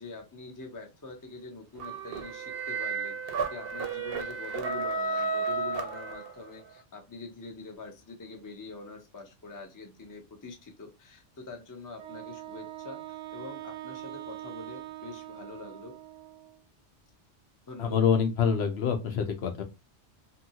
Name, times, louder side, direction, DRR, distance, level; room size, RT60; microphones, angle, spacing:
voice 1, 0.0-3.2 3.5-16.0 17.7-18.0, left 3 dB, 20° left, 3 dB, 0.6 m, -45 dB
sound 1, 1.8-6.6, right 4 dB, 60° right, 0.8 m, -32 dB
Wind instrument woodwind instrument, 12.0-16.6, right 15 dB, 90° right, 0.9 m, -43 dB
voice 2, 17.8-19.6, left 7 dB, 70° left, 6 dB, 0.9 m, -26 dB
2.8 x 2.7 x 2.6 m, 0.27 s
omnidirectional pair, 1.2 m